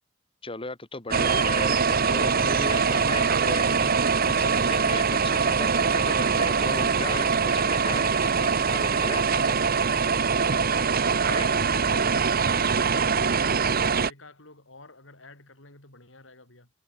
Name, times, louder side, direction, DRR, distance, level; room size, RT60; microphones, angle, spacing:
voice 1, 0.4-1.7 2.1-3.9 4.3-9.6 11.3-11.5, left 2 dB, 30° left, 3.8 m, -36 dB
sound 1, 1.1-14.1, right 5 dB, 50° right, 1.1 m, -23 dB
voice 2, 11.0-16.7, left 2 dB, 75° left, 6.9 m, -49 dB
head